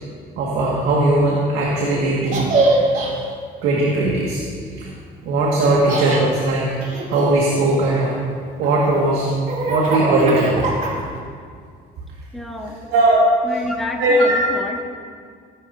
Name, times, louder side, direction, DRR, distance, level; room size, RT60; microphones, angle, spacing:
voice 1, 0.4-2.8 3.6-4.4 4.7-4.9 5.2-6.7 7.1-8.2 8.6-9.3 9.7-10.7 12.9-13.3 14.0-14.3, right 2 dB, 85° right, -4 dB, 2.2 m, -18 dB
Laughter, 2.3-3.1 5.6-6.2 6.8-8.1 8.6-11.2, right 2 dB, 50° right, 3.4 m, -23 dB
voice 2, 12.3-12.8 13.4-14.8, left 1 dB, ahead, -2 dB, 2.1 m, -29 dB
23.0 x 12.0 x 2.9 m, 2.1 s
cardioid pair, 110°, 17 cm